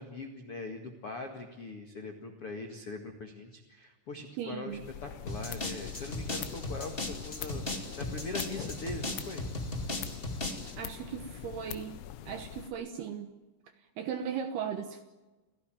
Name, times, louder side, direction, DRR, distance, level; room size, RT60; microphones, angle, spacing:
voice 1, 0.0-9.4, left 3 dB, 75° left, 4 dB, 1.3 m, -41 dB
voice 2, 4.4-4.8 10.8-12.0 12.3-13.3 14.0-15.0, right 8 dB, 70° right, 7 dB, 2.5 m, -37 dB
sound 1, 4.7-12.7, left 11 dB, 90° left, 4.1 m, -43 dB
sound 2, 5.3-10.7, left 1 dB, 55° left, 0.6 m, -37 dB
28.0 x 17.0 x 9.1 m, 1.2 s
omnidirectional pair, 6.0 m